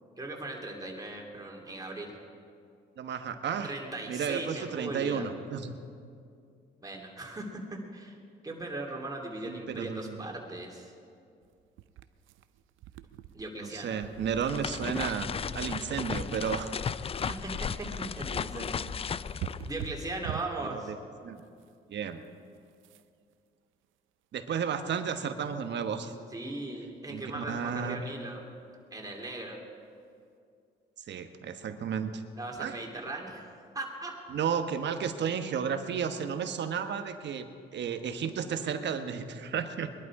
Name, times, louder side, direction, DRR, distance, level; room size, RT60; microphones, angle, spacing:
voice 1, 0.2-2.1 3.6-5.3 6.8-8.1 8.4-10.9 13.3-14.0 17.1-17.5 18.2-18.9 19.7-20.9 26.3-28.4 28.9-29.6 32.4-34.1 35.7-35.8, right 2 dB, 20° right, -1 dB, 2.8 m, -38 dB
voice 2, 3.0-3.7 4.1-5.8 9.4-10.2 13.6-16.7 20.7-20.8 21.2-21.4 21.9-22.2 24.3-26.1 27.1-28.1 31.1-32.2 32.6-32.7 34.3-37.5 37.7-39.9, right 7 dB, 65° right, 8 dB, 1.2 m, -33 dB
sound 1, 11.4-20.6 21.4-21.8 22.1-22.3 22.5-23.3, right 11 dB, 85° right, 0.6 m, -46 dB
sound 2, 14.1-20.5, left 6 dB, 30° left, 0.4 m, -35 dB
21.5 x 11.5 x 4.8 m, 2.4 s
cardioid pair, 90°, 20 cm